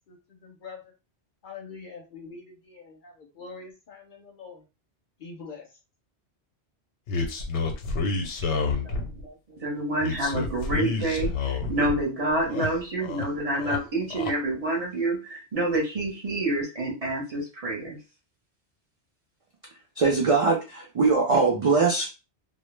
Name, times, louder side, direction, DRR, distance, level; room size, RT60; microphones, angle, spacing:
voice 1, 0.1-0.9 1.4-4.7 5.2-5.8, left 4 dB, 60° left, 3 dB, 0.6 m, -44 dB
sound 1, 7.1-9.2 10.0-12.0 12.3-13.3 13.5-14.3, left 4 dB, 90° left, 0.9 m, -29 dB
voice 2, 8.8-18.0, right 2 dB, 40° right, -2 dB, 0.7 m, -28 dB
voice 3, 20.0-22.1, right 4 dB, 60° right, -1 dB, 0.3 m, -21 dB
2.1 x 2.0 x 3.1 m, 0.30 s
omnidirectional pair, 1.1 m